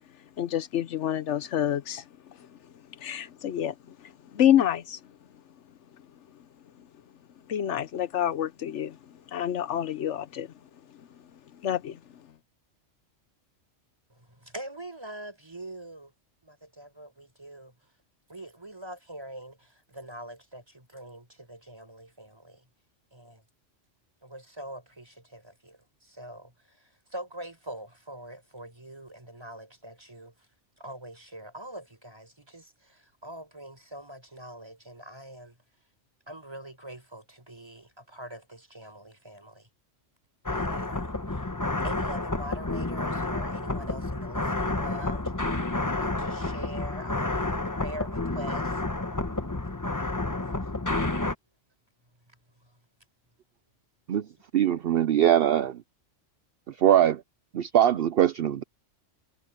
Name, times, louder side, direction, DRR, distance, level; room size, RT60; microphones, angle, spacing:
voice 1, 0.4-2.0 2.4-2.5 3.0-3.7 4.0-5.0 7.5-9.0 9.3-10.5 11.6-12.0, left 11 dB, 75° left, 1.0 m, -27 dB
voice 2, 14.1-16.1 16.4-17.7 18.3-22.6 23.1-23.4 24.2-30.3 30.8-35.6 36.3-39.7 40.5-41.5 41.8-48.8 52.6-52.7, right 1 dB, 20° right, 4.5 m, -43 dB
sound 1, 40.5-51.3, left 2 dB, 15° left, 1.0 m, -30 dB
voice 3, 54.5-55.8 56.8-57.2 57.5-58.6, right 11 dB, 60° right, 0.8 m, -22 dB
omnidirectional pair, 1.2 m